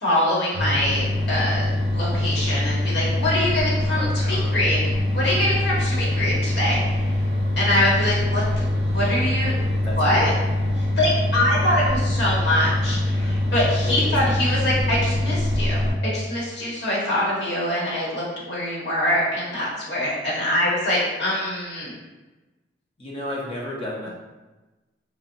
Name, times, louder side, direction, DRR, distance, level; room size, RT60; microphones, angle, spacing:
voice 1, 0.0-7.0 7.6-8.6 8.9-9.5 10.0-10.3 10.8-21.9, left 1 dB, 65° left, -6 dB, 1.0 m, -24 dB
sound 1, 0.5-15.9, left 1 dB, 35° right, 0.6 m, -23 dB
voice 2, 3.9-4.6 8.6-9.0 9.8-10.3 11.5-11.8 13.8-14.1 23.0-24.1, left 1 dB, 30° left, -4 dB, 0.7 m, -33 dB
3.9 x 2.0 x 2.6 m, 1.1 s
head